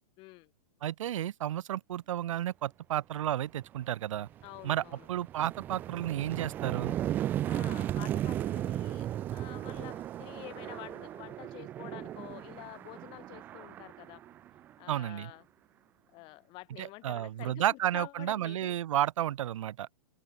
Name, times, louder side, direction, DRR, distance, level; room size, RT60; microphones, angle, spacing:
voice 1, 0.2-0.5 4.4-5.1 7.5-9.1 9.3-14.2 14.8-15.4 16.1-18.8, left 23 dB, 25° left, 3.9 m, -48 dB
voice 2, 0.8-4.3 4.6-6.9 14.9-15.3 16.8-19.9, right 12 dB, 55° right, 2.9 m, -32 dB
sound 1, 3.6-3.8 4.2-15.0, right 12 dB, 10° right, 0.4 m, -36 dB
open air
hypercardioid pair, 165°, 19 cm